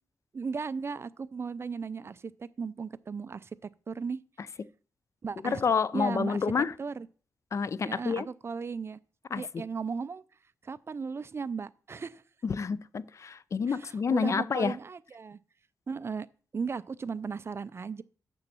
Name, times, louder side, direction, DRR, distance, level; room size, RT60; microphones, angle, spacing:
voice 1, 0.3-4.2 5.2-5.6 5.9-7.1 7.8-9.0 9.4-10.2 10.6-12.2 13.7-15.4 15.9-16.3 16.5-18.0, right 5 dB, 40° right, 0.5 m, -36 dB
voice 2, 5.4-6.7 7.5-8.3 9.3-9.6 12.4-14.8, left 5 dB, 50° left, 0.4 m, -29 dB
7.1 x 6.9 x 6.9 m
wide cardioid pair, 110°, 7 cm